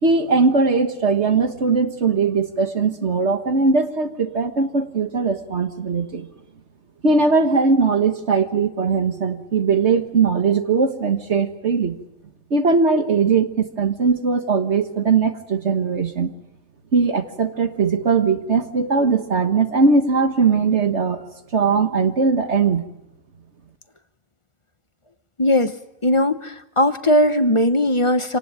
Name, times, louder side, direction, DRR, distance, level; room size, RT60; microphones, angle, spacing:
voice 1, 0.0-6.3 7.0-12.0 12.5-16.3 16.9-21.2 21.5-22.9, right 4 dB, 60° right, 7 dB, 1.7 m, -19 dB
voice 2, 25.4-25.7 26.0-28.4, left 1 dB, 25° left, 10 dB, 0.9 m, -18 dB
26.5 x 19.0 x 9.0 m, 0.93 s
omnidirectional pair, 1.3 m